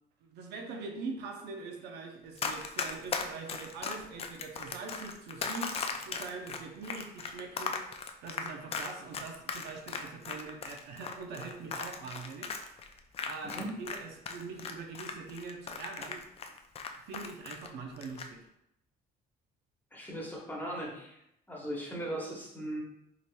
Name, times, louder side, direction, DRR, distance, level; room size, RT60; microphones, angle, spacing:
voice 1, 0.2-13.0 13.2-16.2 17.1-18.5, right 4 dB, 85° right, 3 dB, 0.6 m, -43 dB
Run, 2.4-14.0 14.3-17.7 18.0-18.3, left 5 dB, 35° left, 0.4 m, -37 dB
voice 2, 19.9-21.2 21.5-22.8, right 1 dB, 10° left, -3 dB, 1.1 m, -38 dB
4.9 x 2.9 x 2.2 m, 0.79 s
cardioid pair, 110°, 17 cm